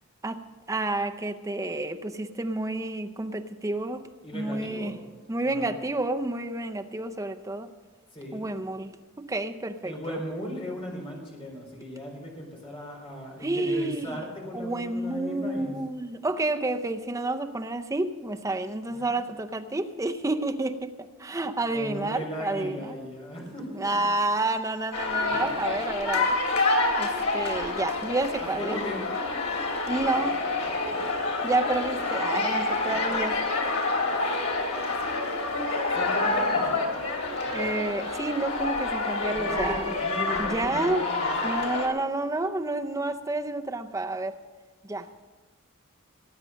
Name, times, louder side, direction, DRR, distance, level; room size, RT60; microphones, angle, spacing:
voice 1, 0.2-4.0 4.3-5.0 5.3-7.7 8.3-10.2 13.4-14.2 14.5-22.9 23.7-26.3 27.0-28.8 29.9-30.4 31.4-33.4 37.5-39.9 40.4-41.1 41.4-44.4 44.8-45.1, right 2 dB, 15° right, 7 dB, 0.6 m, -30 dB
voice 2, 4.2-4.9 5.5-5.7 8.1-8.4 9.8-15.7 18.9-19.0 21.2-21.3 21.6-24.1 28.4-29.0 30.9-31.0 35.9-36.8 39.3-41.4, equal, 25° left, 0 dB, 4.0 m, -37 dB
sound 1, 24.9-41.9, left 3 dB, 85° left, 2.8 m, -28 dB
18.0 x 9.0 x 6.3 m, 1.3 s
head